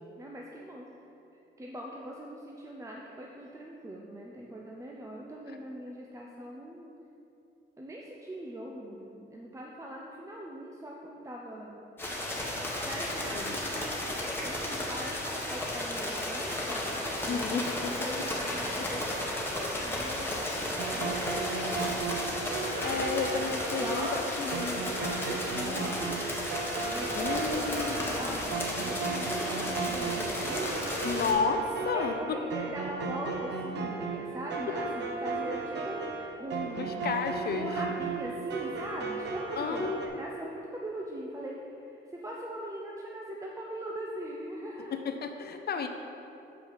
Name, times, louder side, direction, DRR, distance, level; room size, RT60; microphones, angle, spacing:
voice 1, 0.2-0.9 1.6-6.9 7.8-11.8 12.8-22.2 23.8-26.2 26.8-30.9 31.9-37.1 37.5-45.0, equal, 15° right, -2 dB, 0.7 m, -41 dB
sound 1, 12.0-31.3, left 1 dB, 10° left, 1.6 m, -34 dB
voice 2, 17.3-17.9 22.8-24.8 27.1-28.5 31.0-32.4 36.8-37.7 39.6-40.0 44.9-45.9, left 5 dB, 55° left, 6 dB, 0.6 m, -32 dB
sound 2, 20.8-40.1, right 4 dB, 60° right, 0.9 m, -35 dB
7.5 x 4.9 x 5.5 m, 2.8 s
cardioid pair, 90°, 20 cm